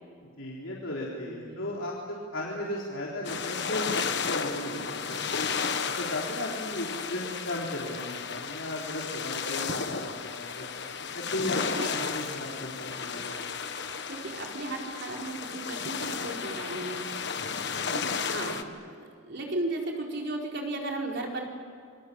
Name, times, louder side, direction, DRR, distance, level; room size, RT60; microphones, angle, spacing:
voice 1, 0.2-3.9 4.3-5.5 5.9-10.7 11.1-13.6 17.4-17.8, left 1 dB, 70° left, -4 dB, 3.9 m, -36 dB
voice 2, 1.2-1.7 11.8-11.9 14.1-17.1 17.9-21.4, right 2 dB, 55° right, 0 dB, 4.7 m, -35 dB
sound 1, 3.2-18.6, left 5 dB, 55° left, 1.4 m, -33 dB
28.0 x 23.0 x 8.6 m, 2.1 s
head